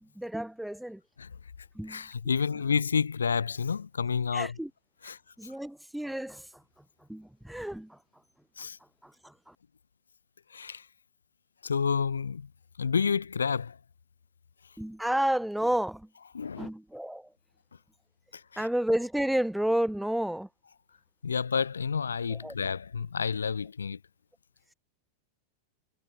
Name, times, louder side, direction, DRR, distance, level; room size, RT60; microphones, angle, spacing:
voice 1, 0.0-1.0 1.7-2.0 4.3-4.7 5.4-6.5 7.1-8.0 9.0-9.5 14.8-16.1 16.6-17.3 18.6-20.5 22.3-22.5, right 1 dB, ahead, 0.8 m, -31 dB
voice 2, 1.9-4.6 5.0-5.5 8.6-8.8 10.5-10.9 11.6-12.5 12.8-13.8 16.3-16.7 18.3-18.7 21.2-24.0, left 6 dB, 70° left, 0.5 m, -30 dB
figure-of-eight pair, 90°, 0 cm